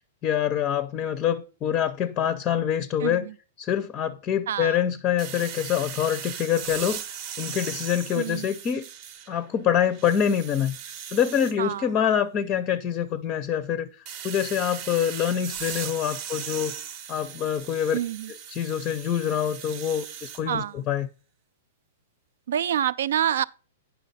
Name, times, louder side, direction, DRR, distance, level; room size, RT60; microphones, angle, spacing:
voice 1, 0.2-3.3 3.6-7.0 7.4-8.8 9.3-10.8 11.1-16.7 17.1-18.0 18.3-21.1, left 9 dB, 25° left, 0.5 m, -25 dB
voice 2, 3.0-3.3 4.5-4.8 8.2-8.5 11.6-11.9 17.9-18.3 20.5-20.8 22.5-23.4, right 10 dB, 75° right, 0.4 m, -27 dB
sound 1, 5.2-9.5 9.9-11.5 14.1-20.4, right 9 dB, 40° right, 0.7 m, -38 dB
9.1 x 5.8 x 4.1 m
hypercardioid pair, 155°, 0 cm